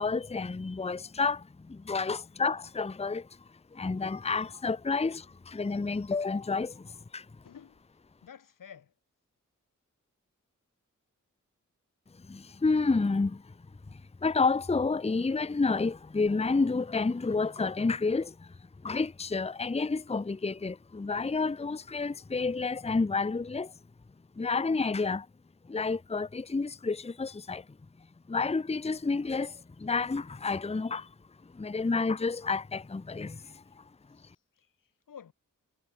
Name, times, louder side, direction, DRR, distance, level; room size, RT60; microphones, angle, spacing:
voice 1, 0.0-3.3 3.7-7.3 12.3-13.4 14.2-18.5 18.8-23.7 24.4-25.3 25.7-27.6 28.3-31.1 31.5-33.6, left 4 dB, 20° left, 0.7 m, -30 dB
voice 2, 7.4-7.8 8.2-8.9 34.2-35.3, left 8 dB, 90° left, 1.7 m, -51 dB
cardioid pair, 40°, 32 cm